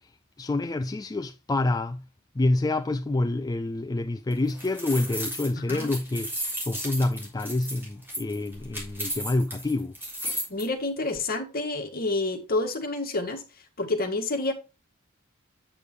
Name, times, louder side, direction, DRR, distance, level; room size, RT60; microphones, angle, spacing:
voice 1, 0.4-2.0 2.4-6.3 6.6-10.0, left 2 dB, 15° left, 0.4 m, -27 dB
sound 1, 4.3-10.6, equal, 10° right, 3.8 m, -34 dB
voice 2, 10.5-13.4 13.8-14.5, left 2 dB, 45° left, 1.8 m, -28 dB
8.4 x 6.8 x 3.1 m
head